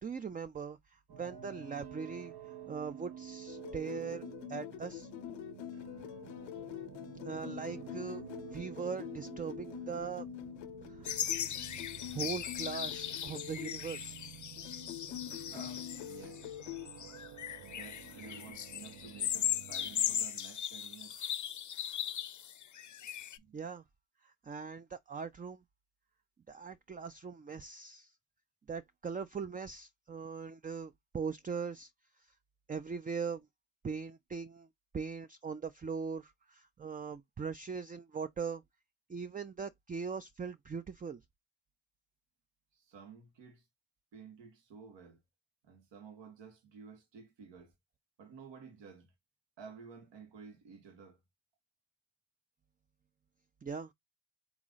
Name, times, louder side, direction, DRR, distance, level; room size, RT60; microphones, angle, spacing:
voice 1, 0.0-5.1 7.2-8.2 8.5-10.3 10.9-11.1 12.1-14.2 23.5-23.8 24.2-25.6 26.5-28.1 28.7-31.9 32.7-33.5 33.8-34.7 34.9-38.6 39.1-41.2 53.6-53.9, right 5 dB, 20° right, 0.4 m, -40 dB
sound 1, 1.1-20.3, right 9 dB, 55° right, 0.9 m, -50 dB
sound 2, 3.5-13.8 14.6-16.9 18.0-18.5, left 14 dB, 80° left, 0.8 m, -46 dB
sound 3, 11.0-23.4, left 10 dB, 45° left, 0.7 m, -38 dB
voice 2, 15.5-16.4 17.6-21.2 23.4-23.6 42.7-43.7 44.1-45.2 45.6-47.7 48.2-49.1 49.6-51.2, right 6 dB, 75° right, 1.5 m, -53 dB
3.8 x 3.0 x 3.9 m
supercardioid pair, 50°, 44 cm